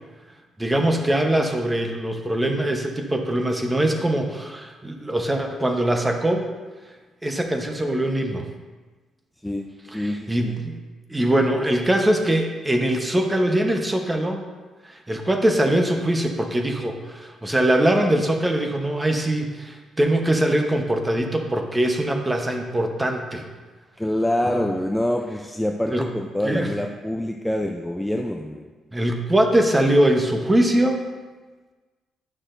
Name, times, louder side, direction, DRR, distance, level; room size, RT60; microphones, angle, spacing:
voice 1, 0.6-6.5 7.2-8.5 9.9-10.8 11.1-14.5 14.8-23.4 24.4-24.6 25.9-26.1 26.4-26.7 28.9-31.0, right 1 dB, 15° right, 4 dB, 0.9 m, -22 dB
voice 2, 9.9-10.5 24.0-28.7, left 1 dB, 5° left, 2 dB, 0.4 m, -26 dB
9.8 x 6.2 x 2.6 m, 1.3 s
cardioid pair, 90°, 0 cm